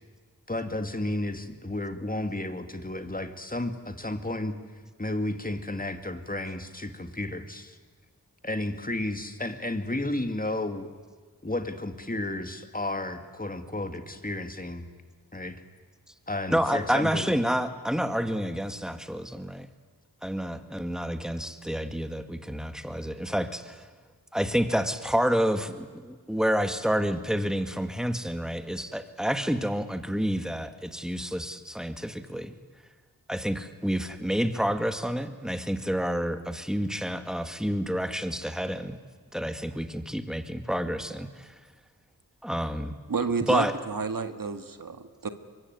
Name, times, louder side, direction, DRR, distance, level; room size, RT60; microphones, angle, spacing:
voice 1, 0.5-4.6 5.0-7.8 8.4-10.9 11.4-14.9 15.3-15.6 16.3-17.3, left 1 dB, 25° left, 7 dB, 2.3 m, -32 dB
voice 2, 16.5-19.7 20.2-23.8 24.3-32.6 33.3-39.0 39.3-41.5 42.4-42.9 43.5-43.7, equal, ahead, 8 dB, 2.1 m, -29 dB
voice 3, 43.1-45.3, right 5 dB, 65° right, 8 dB, 1.8 m, -30 dB
23.5 x 23.0 x 9.7 m, 1.5 s
cardioid pair, 55°, 36 cm